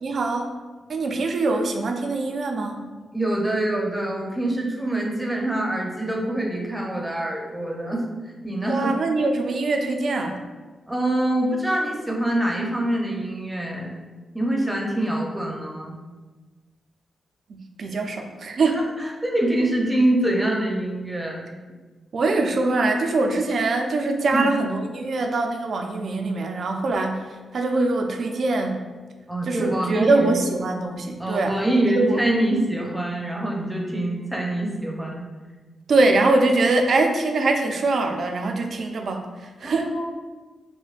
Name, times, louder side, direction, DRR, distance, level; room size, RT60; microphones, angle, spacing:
voice 1, 0.0-0.5 0.9-2.8 8.7-10.4 17.5-18.8 22.1-27.2 27.5-28.8 29.4-32.2 35.9-39.2 39.6-39.9, right 2 dB, 60° right, 3 dB, 0.4 m, -23 dB
voice 2, 3.1-8.0 8.4-8.9 10.9-13.9 14.3-15.9 18.7-21.4 24.3-24.5 29.3-30.4 31.2-35.3 39.6-40.1, right 1 dB, 10° right, -1 dB, 0.7 m, -25 dB
5.2 x 2.2 x 2.4 m, 1.3 s
cardioid pair, 85°, 0 cm